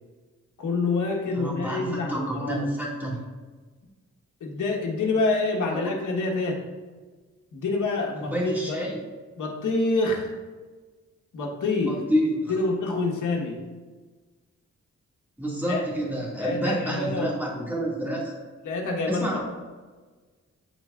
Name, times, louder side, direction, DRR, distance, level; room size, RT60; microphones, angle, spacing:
voice 1, 0.6-2.7 4.4-6.6 7.5-8.8 9.4-10.3 11.3-12.0 12.5-13.6 15.7-15.8 16.4-17.3 18.6-19.3, left 3 dB, 85° left, -1 dB, 1.4 m, -27 dB
voice 2, 1.3-3.2 5.7-5.8 8.2-8.9 11.9-12.5 15.4-18.3 19.1-19.4, equal, 5° right, -5 dB, 2.1 m, -28 dB
12.5 x 4.5 x 2.5 m, 1.4 s
wide cardioid pair, 100°, 30 cm